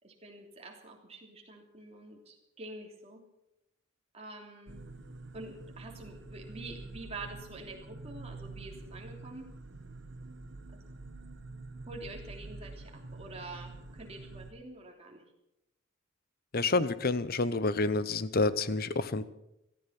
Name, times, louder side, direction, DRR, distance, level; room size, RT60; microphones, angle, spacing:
voice 1, 0.0-3.2 4.1-4.8 5.3-9.5 10.7-10.8 11.9-15.2, right 2 dB, 30° right, 1 dB, 3.2 m, -46 dB
sound 1, 4.7-14.5, right 2 dB, 60° right, 1.2 m, -47 dB
voice 2, 16.5-19.2, left 3 dB, 50° left, 15 dB, 0.8 m, -28 dB
17.5 x 14.0 x 5.9 m, 0.87 s
head